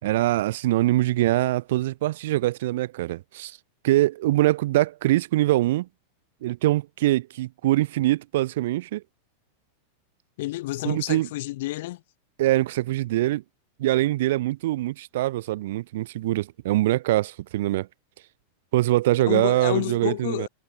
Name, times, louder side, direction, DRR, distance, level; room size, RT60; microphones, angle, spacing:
voice 1, 0.0-3.6 3.8-5.9 6.4-9.0 10.8-11.3 12.4-13.4 13.8-17.9 18.7-20.5, right 16 dB, 55° right, 3.1 m, -23 dB
voice 2, 10.4-12.0 19.2-20.5, left 17 dB, 55° left, 7.5 m, -29 dB
figure-of-eight pair, 90°, 0 cm